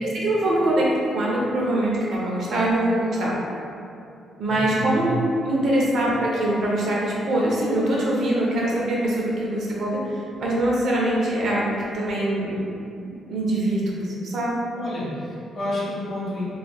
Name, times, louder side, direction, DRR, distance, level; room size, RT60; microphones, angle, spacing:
voice 1, 0.0-3.4 4.4-5.1 5.4-12.6 13.3-14.6, right 1 dB, 60° right, -4 dB, 0.7 m, -23 dB
voice 2, 4.5-4.9 14.8-16.5, left 1 dB, 45° left, -9 dB, 1.4 m, -30 dB
3.2 x 2.7 x 2.3 m, 2.6 s
cardioid pair, 90°, 0 cm